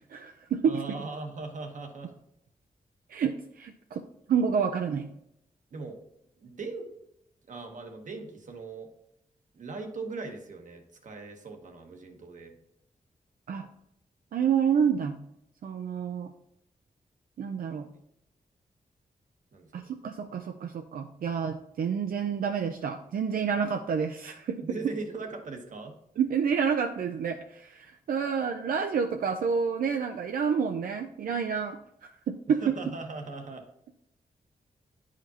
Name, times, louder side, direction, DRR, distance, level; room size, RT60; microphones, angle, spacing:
voice 1, 0.1-0.8 3.1-4.0 4.3-5.1 13.5-13.7 14.3-15.2 15.6-16.3 17.4-17.9 19.7-24.6 26.2-32.6, right 6 dB, 85° right, 5 dB, 0.5 m, -29 dB
voice 2, 0.6-2.1 5.7-6.0 6.4-6.9 7.5-8.9 9.5-12.5 19.5-19.9 24.6-26.0 32.6-33.6, right 3 dB, 60° right, 4 dB, 1.1 m, -39 dB
10.5 x 5.0 x 2.9 m, 0.77 s
wide cardioid pair, 150°, 14 cm